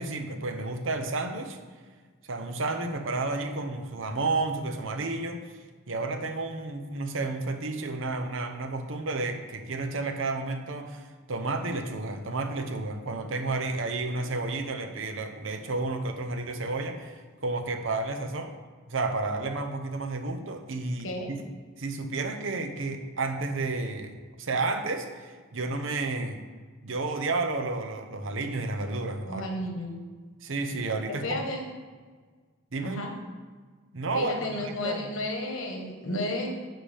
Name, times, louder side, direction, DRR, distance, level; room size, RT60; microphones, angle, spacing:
voice 1, 0.0-1.6 2.2-5.4 5.9-18.5 18.9-21.4 21.8-26.4 26.8-29.7 30.4-31.4 32.7-33.0 33.9-35.1, right 3 dB, 70° right, 6 dB, 0.8 m, -31 dB
voice 2, 29.2-29.9 31.1-31.6 32.8-33.1 34.1-36.5, left 1 dB, 75° left, 2 dB, 1.3 m, -32 dB
10.0 x 5.9 x 3.5 m, 1.5 s
head